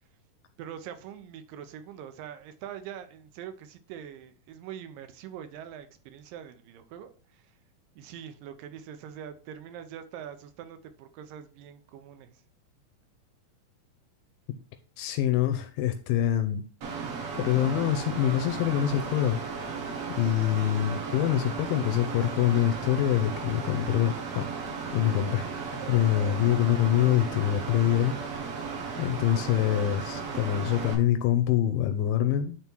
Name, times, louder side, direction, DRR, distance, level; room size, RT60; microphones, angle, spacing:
voice 1, 0.6-7.5 8.0-12.4 28.7-29.0, right 9 dB, 85° right, 2.5 m, -43 dB
voice 2, 15.0-16.6 17.3-19.4 19.7-19.8 20.2-24.5 24.9-28.1 29.0-32.6, left 11 dB, 90° left, 2.3 m, -25 dB
Mechanical fan, 16.8-30.9, right 5 dB, 55° right, 1.9 m, -35 dB
9.0 x 3.6 x 4.5 m
omnidirectional pair, 3.9 m